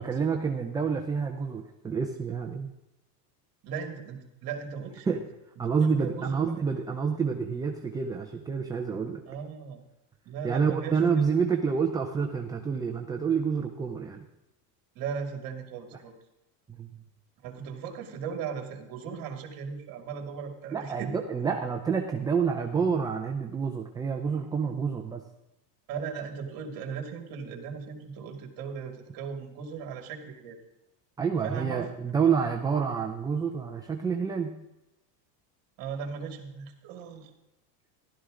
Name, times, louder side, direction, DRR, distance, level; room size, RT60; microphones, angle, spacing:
voice 1, 0.0-2.7 5.1-5.2 5.6-9.2 10.4-14.3 16.8-16.9 20.7-25.2 31.2-34.6, right 6 dB, 10° right, 2 dB, 0.4 m, -28 dB
voice 2, 3.6-5.2 5.8-6.4 9.3-9.8 10.2-11.2 14.9-16.1 17.4-21.2 25.9-30.6 31.4-31.9 32.2-32.3 35.8-37.3, right 6 dB, 45° right, 3 dB, 2.6 m, -37 dB
14.5 x 12.5 x 3.8 m, 0.92 s
cardioid pair, 155°, 48 cm